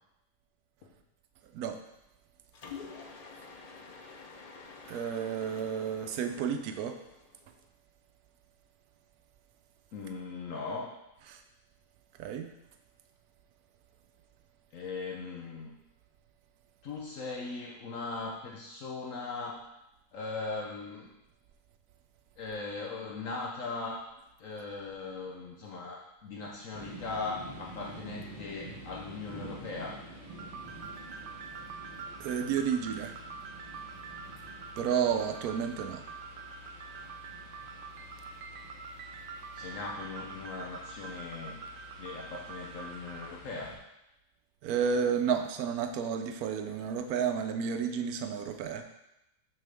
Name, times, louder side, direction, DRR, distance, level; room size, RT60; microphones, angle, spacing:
voice 1, 1.4-1.8 4.9-7.0 11.3-11.4 12.2-12.5 32.2-33.2 34.8-36.0 44.6-48.8, right 7 dB, 90° right, 7 dB, 1.1 m, -31 dB
Mechanisms, 2.5-7.6, left 5 dB, 85° left, 0.3 m, -49 dB
voice 2, 9.9-10.9 14.7-15.7 16.8-19.6 20.1-21.1 22.4-24.0 24.4-30.0 39.5-41.6 42.0-43.7, left 3 dB, 65° left, -1 dB, 1.1 m, -39 dB
sound 1, 26.7-43.8, equal, 35° right, 2.4 m, -49 dB
sound 2, 30.3-43.3, right 5 dB, 60° right, 0.5 m, -45 dB
6.3 x 6.0 x 3.4 m, 0.89 s
omnidirectional pair, 1.5 m